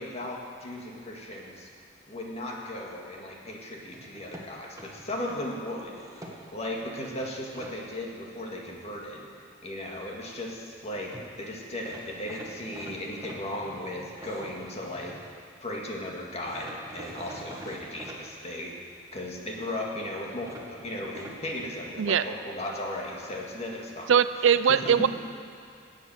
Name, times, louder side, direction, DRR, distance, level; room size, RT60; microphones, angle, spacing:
voice 1, 0.0-1.7 2.1-9.3 9.6-15.2 15.6-18.7 19.1-24.1 24.4-25.1, left 1 dB, 35° left, -1 dB, 2.0 m, -36 dB
sound 1, 3.9-5.4 5.9-6.7 7.2-7.7 10.8-10.9 11.1-11.3 11.8-15.3 16.4-18.2 20.4-21.4, right 1 dB, 20° right, 1.6 m, -45 dB
voice 2, 24.1-25.1, right 7 dB, 90° right, 14 dB, 0.4 m, -21 dB
16.5 x 8.3 x 6.3 m, 2.3 s
head